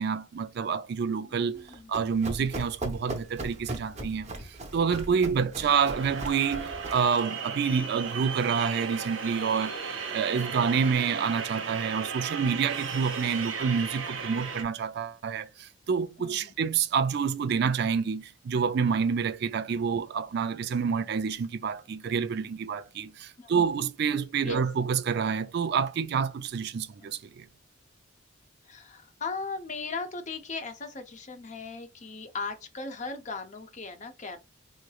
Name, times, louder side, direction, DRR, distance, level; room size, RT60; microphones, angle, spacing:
voice 1, 0.0-9.8 10.1-27.5, right 6 dB, 55° right, 0.3 m, -28 dB
voice 2, 1.1-1.9 4.3-4.5 16.2-16.5 23.4-23.7 24.4-24.6 27.0-27.1 28.6-34.4, left 4 dB, 35° left, 0.6 m, -38 dB
Run, 1.6-7.1, right 1 dB, 35° right, 0.7 m, -39 dB
sound 1, 5.7-14.6, right 6 dB, 70° right, 0.8 m, -35 dB
3.8 x 3.1 x 2.3 m
head